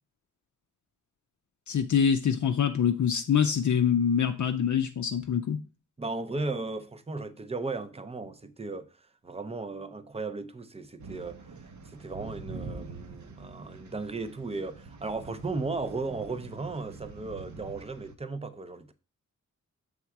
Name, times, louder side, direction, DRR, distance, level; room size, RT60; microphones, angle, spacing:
voice 1, 1.7-5.6, left 7 dB, 65° left, 0.5 m, -25 dB
voice 2, 6.0-8.9 9.2-18.9, right 3 dB, 20° right, 0.5 m, -36 dB
sound 1, 11.0-18.1, right 3 dB, 65° right, 0.9 m, -45 dB
7.2 x 3.6 x 4.6 m
wide cardioid pair, 150°, 32 cm